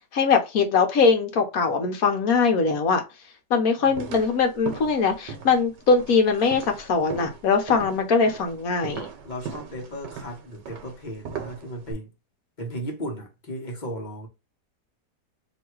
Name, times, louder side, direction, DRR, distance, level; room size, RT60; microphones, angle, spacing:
voice 1, 0.1-3.0 3.5-9.1, left 5 dB, 60° left, 1.2 m, -21 dB
sound 1, 3.9-11.9, right 7 dB, 80° right, 1.5 m, -39 dB
voice 2, 9.2-12.1 12.6-14.3, equal, 30° left, 1.1 m, -35 dB
3.1 x 2.8 x 4.5 m
omnidirectional pair, 1.9 m